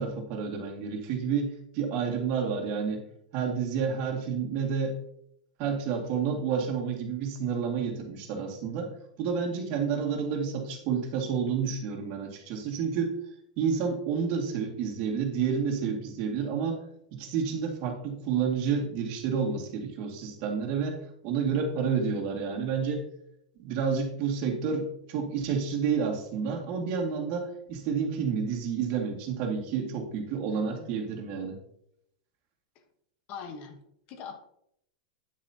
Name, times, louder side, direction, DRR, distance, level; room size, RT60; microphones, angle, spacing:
voice 1, 0.0-3.0 3.3-4.9 5.6-8.9 9.2-13.2 13.6-23.0 23.6-31.6, right 6 dB, 45° right, 2 dB, 2.2 m, -30 dB
voice 2, 30.5-31.0 32.7-32.8 33.3-34.4, left 6 dB, 40° left, 6 dB, 1.2 m, -43 dB
9.7 x 9.2 x 2.9 m, 0.71 s
supercardioid pair, 150°, 4 cm